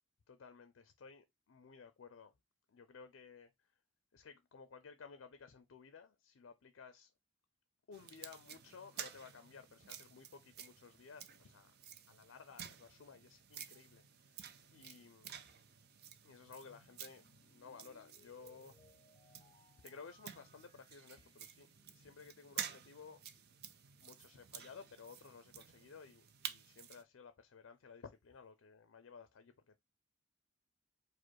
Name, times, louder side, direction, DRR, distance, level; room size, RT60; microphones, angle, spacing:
voice 1, 0.3-2.3 2.7-3.8 4.1-7.1 7.9-11.7 12.1-15.3 16.2-18.8 19.8-23.2 24.0-29.8, left 5 dB, 70° left, 0.5 m, -56 dB
sound 1, 7.9-27.0, right 8 dB, 55° right, 0.5 m, -52 dB
sound 2, 16.4-23.7, left 2 dB, 25° left, 0.5 m, -71 dB
4.9 x 2.1 x 4.4 m
head